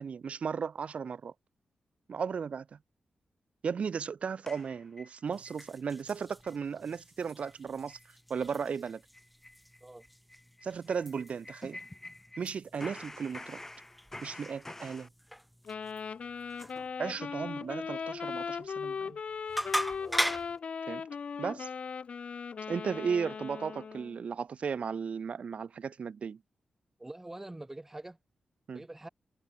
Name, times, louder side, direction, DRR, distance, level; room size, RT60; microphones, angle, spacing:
voice 1, 0.0-1.3 2.1-2.8 3.6-8.0 8.3-9.0 10.6-11.8 12.4-13.6 14.2-15.1 17.0-19.2 20.9-21.0 21.4-21.7 22.7-26.4 28.7-28.8, right 6 dB, 60° right, 0.4 m, -35 dB
sound 1, 4.5-5.6 6.0-6.1 6.4-6.7 6.9-7.0 7.4-7.6 7.9-8.1 8.4-8.5 8.8-12.5 12.8-15.1, left 2 dB, 15° left, 2.0 m, -48 dB
sound 2, 5.2-20.6, equal, ahead, 2.0 m, -41 dB
Wind instrument woodwind instrument, 15.7-24.2, left 6 dB, 55° left, 0.4 m, -38 dB
voice 2, 27.0-28.2 28.7-29.1, right 1 dB, 15° right, 2.7 m, -45 dB
wide cardioid pair, 95°, 2 cm